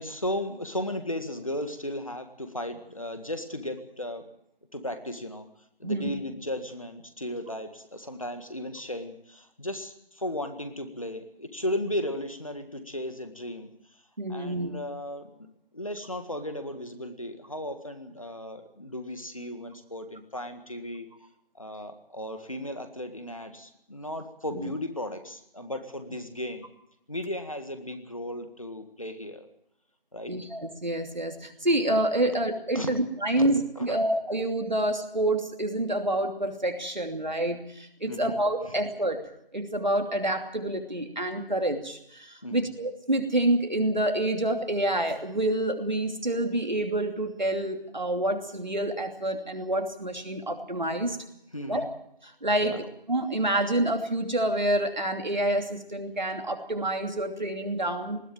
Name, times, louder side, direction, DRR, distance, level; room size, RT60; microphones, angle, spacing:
voice 1, 0.0-4.2 4.7-5.5 5.8-14.0 14.3-15.3 15.7-21.1 21.5-26.7 27.1-29.5 30.1-30.3 32.7-32.9 33.4-33.5 33.8-34.0 38.1-38.7 42.4-42.7 51.5-51.9 52.6-52.8, left 1 dB, 35° left, 8 dB, 1.8 m, -35 dB
voice 2, 14.2-14.7 24.5-24.6 30.3-39.2 39.5-51.2 51.7-51.9 52.4-52.7 53.1-58.3, right 1 dB, 50° right, 4 dB, 2.9 m, -27 dB
20.0 x 15.5 x 9.1 m, 0.74 s
figure-of-eight pair, 175°, 29 cm